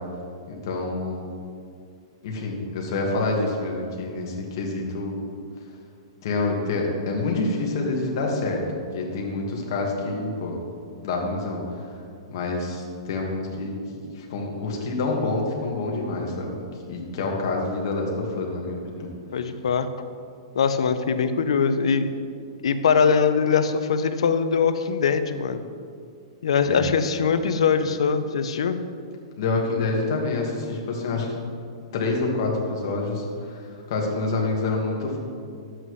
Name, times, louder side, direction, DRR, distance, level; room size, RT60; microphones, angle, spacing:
voice 1, 0.5-1.3 2.2-5.2 6.2-10.6 11.0-11.9 12.3-16.5 16.9-19.1 26.6-26.8 29.4-31.4 31.9-35.2, left 3 dB, 45° left, -1 dB, 1.6 m, -27 dB
voice 2, 19.3-19.9 20.5-22.1 22.6-25.6 26.4-28.8, left 6 dB, 90° left, 10 dB, 0.6 m, -22 dB
11.0 x 7.8 x 3.2 m, 2.3 s
supercardioid pair, 175°, 3 cm